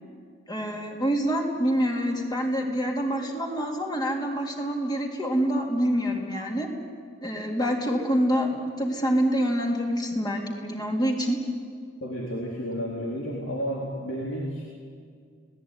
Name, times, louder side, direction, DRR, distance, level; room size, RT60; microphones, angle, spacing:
voice 1, 0.5-6.7 7.2-11.4, equal, 20° left, 1 dB, 3.6 m, -26 dB
voice 2, 12.0-14.6, equal, 70° left, -2 dB, 3.8 m, -31 dB
30.0 x 19.0 x 9.9 m, 2.1 s
head